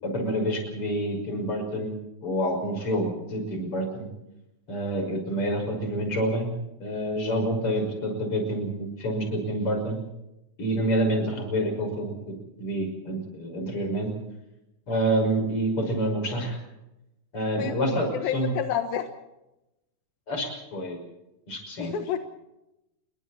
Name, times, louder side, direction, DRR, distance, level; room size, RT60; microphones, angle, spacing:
voice 1, 0.0-4.1 4.7-6.5 6.8-10.0 10.6-12.1 12.6-14.1 14.9-16.6 17.3-18.5 20.3-21.0 21.5-21.9, right 1 dB, 35° left, 4 dB, 6.5 m, -27 dB
voice 2, 17.6-19.1 21.8-22.2, left 9 dB, 85° left, 7 dB, 3.2 m, -29 dB
29.5 x 22.5 x 4.3 m, 0.92 s
omnidirectional pair, 4.1 m